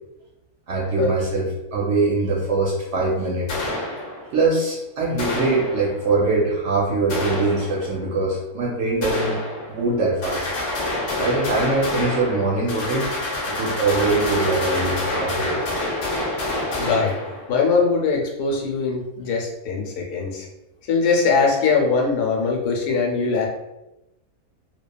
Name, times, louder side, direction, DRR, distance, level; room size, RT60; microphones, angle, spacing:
voice 1, 0.7-3.5 4.3-10.5 11.2-13.1 13.5-15.6, right 3 dB, 65° right, -3 dB, 0.7 m, -22 dB
sound 1, 3.5-4.5 5.2-6.2 7.1-8.1 9.0-9.9 10.2-17.7, left 2 dB, 60° left, 0.9 m, -27 dB
voice 2, 16.8-17.1 17.5-20.5 20.9-23.5, left 4 dB, 85° left, 0 dB, 1.2 m, -21 dB
3.0 x 2.2 x 2.2 m, 0.94 s
omnidirectional pair, 1.6 m